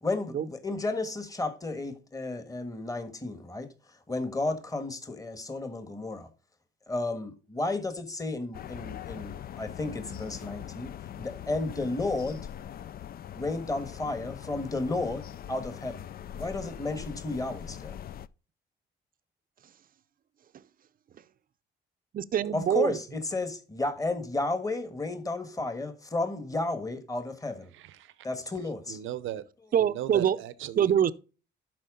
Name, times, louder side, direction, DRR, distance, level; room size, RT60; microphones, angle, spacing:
voice 1, 0.0-3.7 4.1-6.3 6.9-12.4 13.3-16.1 16.4-18.0 22.5-27.7 28.2-29.0, left 2 dB, 15° left, 1.5 m, -33 dB
sound 1, 8.5-18.3, left 10 dB, 50° left, 0.4 m, -42 dB
voice 2, 22.1-23.0 29.7-30.4 30.8-31.1, right 9 dB, 45° right, 0.6 m, -24 dB
voice 3, 27.7-28.3 28.9-29.4 29.7-30.9, right 12 dB, 85° right, 0.8 m, -38 dB
12.0 x 4.5 x 3.8 m
cardioid pair, 90°, 20 cm